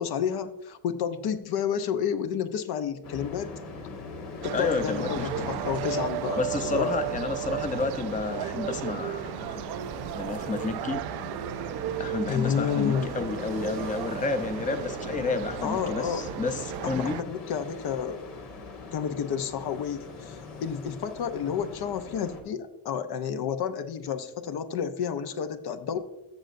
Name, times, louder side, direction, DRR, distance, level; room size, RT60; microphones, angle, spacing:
voice 1, 0.0-3.6 4.4-7.0 12.2-13.1 15.6-16.3 16.8-18.2 18.9-26.0, left 8 dB, 65° left, 9 dB, 0.8 m, -30 dB
sound 1, 3.0-22.4, left 3 dB, 85° left, 1.8 m, -41 dB
sound 2, 4.4-17.2, right 14 dB, 70° right, 0.5 m, -34 dB
voice 2, 4.5-5.5 6.4-9.6 10.1-11.0 12.0-17.2, left 4 dB, 20° left, 8 dB, 0.6 m, -30 dB
14.5 x 6.5 x 2.6 m, 0.96 s
cardioid pair, 100°, 41 cm